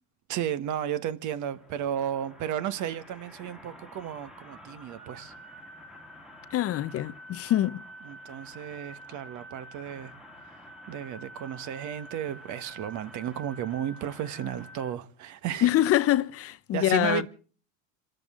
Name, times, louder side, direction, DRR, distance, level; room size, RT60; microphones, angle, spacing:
voice 1, 0.3-5.3 8.0-10.1 10.9-15.7 16.7-17.3, right 10 dB, 45° right, 1.4 m, -33 dB
sound 1, 1.3-14.9, equal, ahead, 1.8 m, -48 dB
voice 2, 6.5-7.8 15.6-17.3, left 13 dB, 35° left, 0.7 m, -25 dB
28.0 x 13.5 x 3.7 m
supercardioid pair, 110°, 41 cm